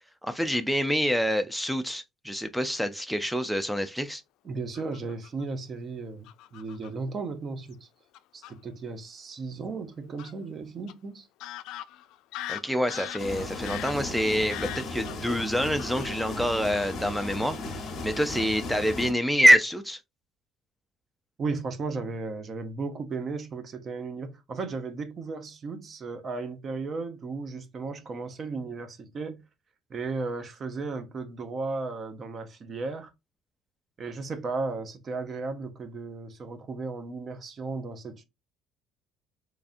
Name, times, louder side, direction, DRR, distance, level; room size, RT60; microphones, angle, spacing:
voice 1, 0.2-4.2 12.5-20.0, equal, ahead, 0.3 m, -26 dB
voice 2, 4.4-7.9 8.3-11.3 21.4-29.4 29.9-33.1 34.0-38.2, right 3 dB, 35° right, 0.7 m, -35 dB
Fowl / Bird vocalization bird call bird song, 4.7-5.4 6.3-6.9 7.7-7.8 8.1-8.5 10.2-10.3 10.9-11.0 11.4-17.3 17.6-17.8 18.1-18.4 18.7-19.0, left 13 dB, 75° left, 0.3 m, -41 dB
sound 1, 13.2-19.1, left 2 dB, 45° left, 1.0 m, -36 dB
3.6 x 3.3 x 2.5 m
cardioid pair, 150°, 0 cm